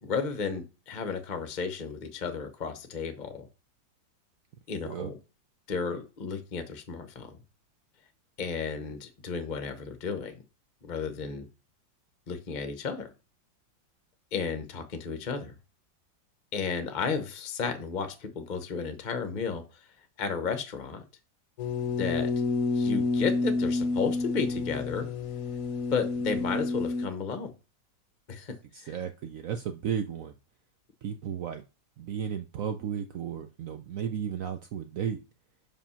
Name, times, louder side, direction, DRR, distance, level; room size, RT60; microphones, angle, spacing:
voice 1, 0.0-3.5 4.7-5.2 5.7-7.4 8.4-10.3 10.8-11.5 12.3-13.1 14.3-15.5 16.5-19.9 20.2-21.0 22.0-22.3 22.7-25.1 25.9-27.5 28.3-28.5 28.8-28.9, left 5 dB, 35° left, 8 dB, 0.8 m, -33 dB
sound 1, 21.6-27.1, left 3 dB, 65° left, 0.9 m, -29 dB
voice 2, 28.7-30.3 31.0-31.6 32.0-35.2, right 8 dB, 70° right, 8 dB, 0.8 m, -34 dB
5.5 x 5.1 x 5.6 m, 0.31 s
omnidirectional pair, 2.0 m